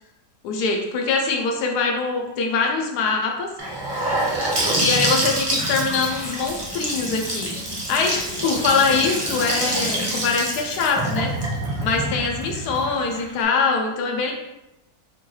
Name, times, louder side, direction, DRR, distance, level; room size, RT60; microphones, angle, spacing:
voice 1, 0.4-3.5 4.0-4.1 4.8-7.5 7.9-11.3 11.8-14.3, left 4 dB, 90° left, 2 dB, 1.2 m, -23 dB
Gurgling / Sink (filling or washing) / Bathtub (filling or washing), 3.6-13.4, right 1 dB, 25° right, 0.5 m, -26 dB
4.3 x 2.3 x 3.0 m, 0.93 s
omnidirectional pair, 1.7 m